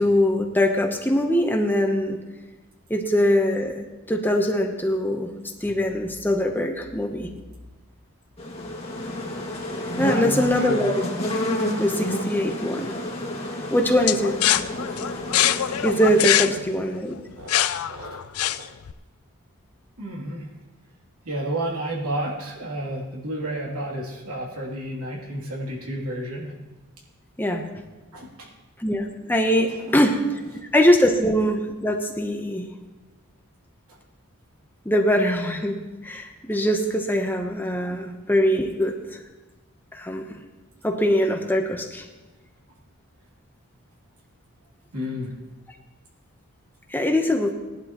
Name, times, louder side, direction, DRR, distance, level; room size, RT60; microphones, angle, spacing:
voice 1, 0.0-2.2 2.9-5.3 5.6-7.3 10.0-11.0 11.8-13.0 13.7-14.4 15.8-17.1 27.4-27.6 28.8-30.2 30.7-32.7 34.8-39.2 39.9-40.4 40.8-42.0 46.9-47.5, equal, 10° left, 3 dB, 0.9 m, -22 dB
sound 1, 8.4-16.4, left 1 dB, 25° left, 2.1 m, -30 dB
voice 2, 10.0-10.8 17.4-18.7 20.0-20.5 21.2-26.6 28.1-28.5 29.7-29.9 37.9-38.0 44.9-45.4, right 1 dB, 90° right, -2 dB, 2.9 m, -31 dB
sound 2, 14.1-18.9, left 12 dB, 75° left, 0.4 m, -23 dB
19.0 x 11.5 x 3.0 m, 1.2 s
head